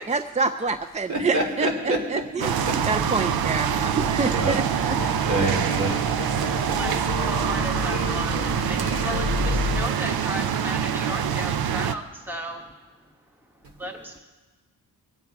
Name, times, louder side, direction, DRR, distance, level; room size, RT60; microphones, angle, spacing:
voice 1, 0.1-1.7 2.1-2.5 2.9-5.0, right 4 dB, 20° right, 9 dB, 0.4 m, -26 dB
voice 2, 1.1-2.8 3.1-3.9 4.3-4.6 5.2-5.9, right 2 dB, 55° right, 1 dB, 3.0 m, -28 dB
sound 1, 2.4-11.9, right 8 dB, 85° right, 0.6 m, -25 dB
sound 2, 2.6-9.9, left 4 dB, 35° left, 0.9 m, -32 dB
voice 3, 6.5-13.1 13.4-14.2, right 1 dB, 5° right, 3 dB, 1.1 m, -35 dB
22.0 x 8.9 x 4.7 m, 1.2 s
wide cardioid pair, 140°, 35 cm